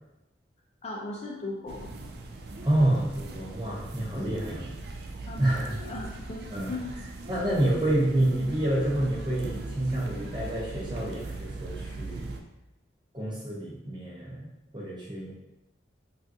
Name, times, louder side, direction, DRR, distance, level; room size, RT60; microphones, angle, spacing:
voice 1, 0.8-1.9 5.2-6.9, left 2 dB, 35° left, -2 dB, 0.4 m, -38 dB
sound 1, 1.7-12.4, right 3 dB, 60° right, 0.3 m, -40 dB
voice 2, 2.6-4.7 5.4-5.7 6.5-6.7 7.3-12.3 13.1-14.4 14.7-15.3, right 1 dB, 25° right, -5 dB, 0.7 m, -28 dB
3.6 x 2.4 x 2.6 m, 0.96 s
head